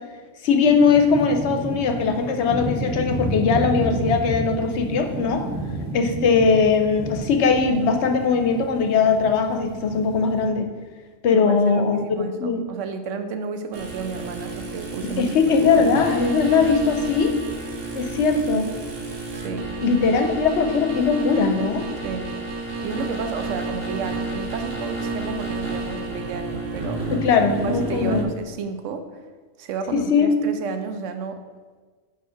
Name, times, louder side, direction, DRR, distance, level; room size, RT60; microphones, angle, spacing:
voice 1, 0.4-5.5 5.9-10.7 11.2-12.6 15.0-17.3 17.9-18.7 19.8-21.9 27.1-28.2 29.9-30.3, left 5 dB, 70° left, 5 dB, 0.9 m, -20 dB
sound 1, 0.7-10.5, right 1 dB, 20° right, 0.6 m, -31 dB
voice 2, 11.3-15.9 19.3-19.7 22.0-22.3 22.8-27.1 27.6-29.1 29.6-31.4, right 5 dB, 85° right, 8 dB, 1.0 m, -32 dB
sound 2, 13.7-28.2, right 2 dB, 55° right, 1.1 m, -31 dB
5.1 x 4.7 x 5.0 m, 1.4 s
omnidirectional pair, 1.3 m